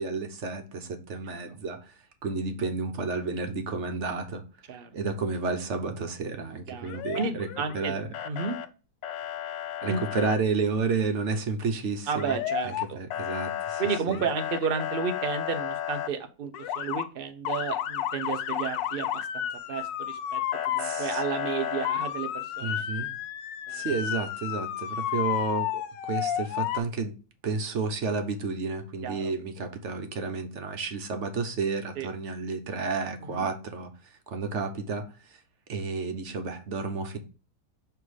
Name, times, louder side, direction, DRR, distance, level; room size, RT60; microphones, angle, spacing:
voice 1, 0.0-1.9 2.2-4.4 4.9-8.1 9.8-12.4 12.6-13.8 14.1-14.2 20.8-21.2 22.6-23.1 23.7-27.1 27.4-33.9 34.3-35.0 35.7-37.2, right 4 dB, 50° right, 1.0 m, -31 dB
voice 2, 6.7-7.9 8.3-8.6 9.9-10.0 12.1-13.0 13.8-20.4 20.7-22.8 23.7-23.8 29.0-29.3 32.0-32.1 33.2-33.5, right 6 dB, 90° right, 0.4 m, -32 dB
Motor vehicle (road) / Siren, 6.9-7.8 8.1-8.7 9.0-10.4 12.2-12.8 13.1-16.1 16.5-17.0 17.4-26.8, left 11 dB, 75° left, 1.3 m, -32 dB
6.7 x 3.4 x 4.9 m
omnidirectional pair, 2.0 m